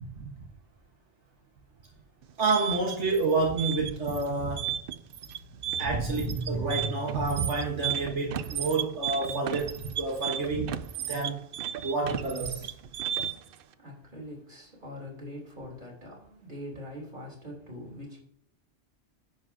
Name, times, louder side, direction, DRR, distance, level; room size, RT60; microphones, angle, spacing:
sound 1, 2.2-13.5, right 10 dB, 60° right, 0.7 m, -34 dB
voice 1, 2.4-4.8 5.8-11.4 11.8-12.7, right 3 dB, 85° right, -1 dB, 1.7 m, -29 dB
Car / Engine starting, 3.9-4.0 4.4-9.6, right 2 dB, 30° right, 0.8 m, -41 dB
voice 2, 13.8-18.2, left 1 dB, 45° right, -2 dB, 3.5 m, -43 dB
10.5 x 8.1 x 2.8 m, 0.65 s
omnidirectional pair, 1.2 m